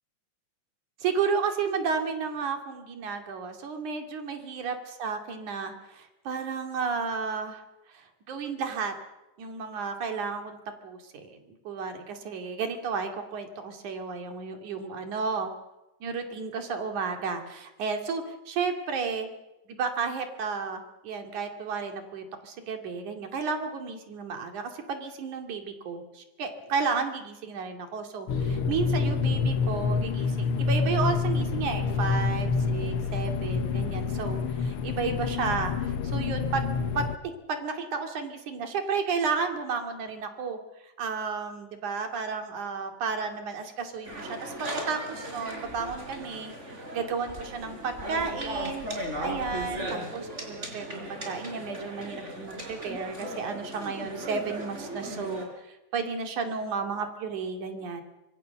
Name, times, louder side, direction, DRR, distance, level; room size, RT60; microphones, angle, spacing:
voice 1, 1.0-7.6 7.9-8.9 9.4-11.4 11.7-15.5 16.0-19.3 19.7-36.7 37.0-46.5 46.9-58.0, right 5 dB, 80° right, 5 dB, 3.9 m, -32 dB
sound 1, 28.3-37.2, left 5 dB, 60° left, 1.7 m, -27 dB
sound 2, 44.1-55.4, right 1 dB, 20° right, 4.5 m, -37 dB
25.5 x 21.5 x 6.9 m, 1.0 s
omnidirectional pair, 3.4 m